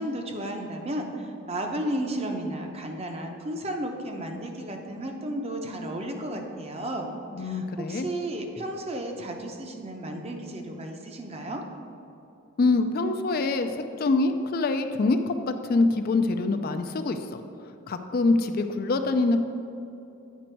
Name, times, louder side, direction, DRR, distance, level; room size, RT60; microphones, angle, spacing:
voice 1, 0.0-7.1 7.4-11.6, right 1 dB, 30° right, 3 dB, 0.7 m, -33 dB
voice 2, 7.3-8.1 12.6-17.4 17.9-19.4, left 3 dB, 45° left, 7 dB, 0.4 m, -25 dB
9.1 x 5.1 x 4.5 m, 2.7 s
head